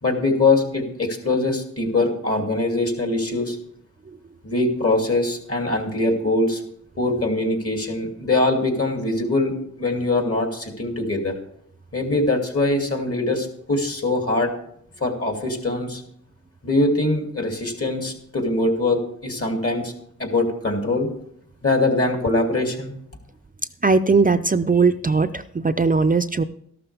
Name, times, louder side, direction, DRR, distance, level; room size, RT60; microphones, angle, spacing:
voice 1, 0.0-3.6 4.4-6.6 7.0-11.3 11.9-14.5 15.0-16.0 16.6-19.9 20.2-21.1 21.6-22.9, left 2 dB, 45° left, 3 dB, 2.7 m, -22 dB
voice 2, 23.8-26.4, right 4 dB, 30° right, 10 dB, 0.5 m, -19 dB
13.5 x 12.0 x 3.4 m, 0.70 s
cardioid pair, 55°, 31 cm